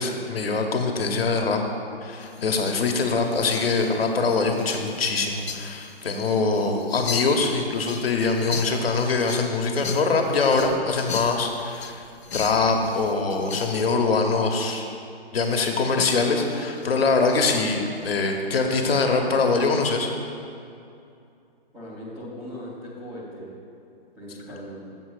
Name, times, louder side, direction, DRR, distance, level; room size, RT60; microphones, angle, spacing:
voice 1, 0.0-1.6 2.0-12.0 12.3-14.9 15.3-20.1, left 4 dB, 70° left, 3 dB, 1.2 m, -23 dB
sound 1, 2.1-13.9 16.0-18.1, left 6 dB, 85° left, 0.6 m, -39 dB
voice 2, 21.7-23.6 24.2-24.9, equal, ahead, -15 dB, 0.3 m, -39 dB
7.5 x 5.1 x 6.6 m, 2.5 s
figure-of-eight pair, 135°, 31 cm